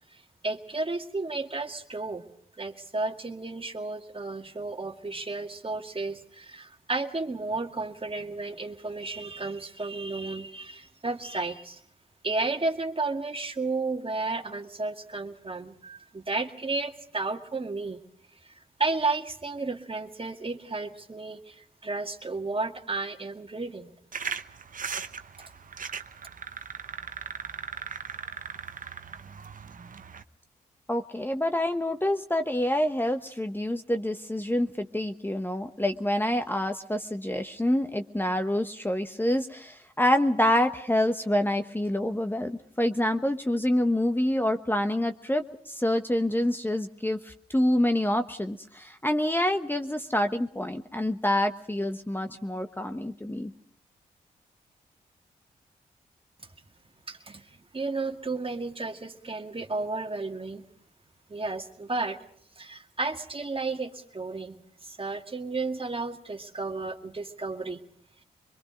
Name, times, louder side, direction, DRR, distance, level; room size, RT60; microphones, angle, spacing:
voice 1, 0.1-2.2 2.6-11.8 12.2-18.0 18.4-23.9 57.1-60.6 61.3-62.2 62.6-64.6 64.8-67.8, right 3 dB, 35° right, 5 dB, 2.0 m, -33 dB
sound 1, 24.1-30.2, right 6 dB, 50° right, 1.0 m, -38 dB
voice 2, 30.9-53.5, left 1 dB, 10° left, 7 dB, 1.2 m, -27 dB
24.5 x 22.0 x 5.2 m, 0.67 s
supercardioid pair, 40°, 17 cm